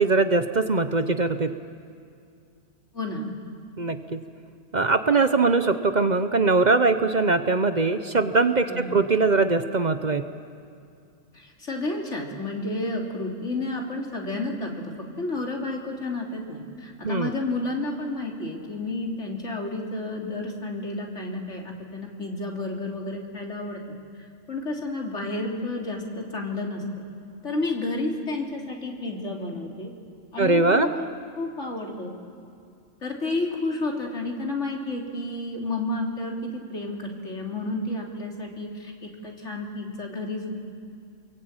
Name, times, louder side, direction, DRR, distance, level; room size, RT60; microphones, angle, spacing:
voice 1, 0.0-1.5 3.8-4.2 4.7-10.2 17.0-17.3 30.4-30.9, right 3 dB, 40° right, 9 dB, 0.9 m, -21 dB
voice 2, 2.9-3.3 8.7-9.0 11.3-23.8 24.5-27.0 27.4-29.9 30.3-31.1 31.4-32.1 33.0-40.5, left 2 dB, 75° left, 0 dB, 3.6 m, -31 dB
29.5 x 22.5 x 8.9 m, 2.4 s
omnidirectional pair, 1.2 m